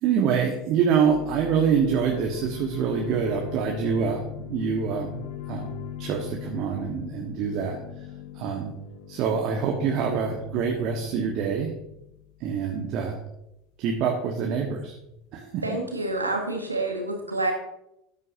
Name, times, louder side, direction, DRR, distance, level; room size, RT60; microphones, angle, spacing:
voice 1, 0.0-5.7 6.0-7.8 8.3-8.7 9.1-11.7 12.4-13.2 13.8-14.9 15.3-15.6, right 6 dB, 50° right, 1 dB, 1.4 m, -26 dB
sound 1, 1.0-12.5, left 12 dB, 60° left, 1.1 m, -40 dB
voice 2, 15.6-17.5, right 2 dB, 90° right, 2 dB, 1.7 m, -28 dB
13.5 x 9.5 x 2.7 m, 0.85 s
figure-of-eight pair, 75°, 0 cm